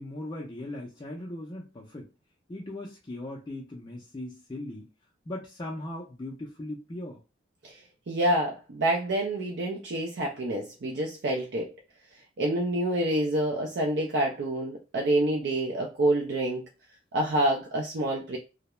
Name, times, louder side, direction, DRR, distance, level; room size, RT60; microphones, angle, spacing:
voice 1, 0.0-2.1 2.5-4.9 5.3-7.2, left 1 dB, 25° left, 0.4 m, -38 dB
voice 2, 8.1-11.7 12.4-16.6 17.1-18.4, right 1 dB, 60° right, 0.4 m, -27 dB
2.3 x 2.0 x 2.9 m
head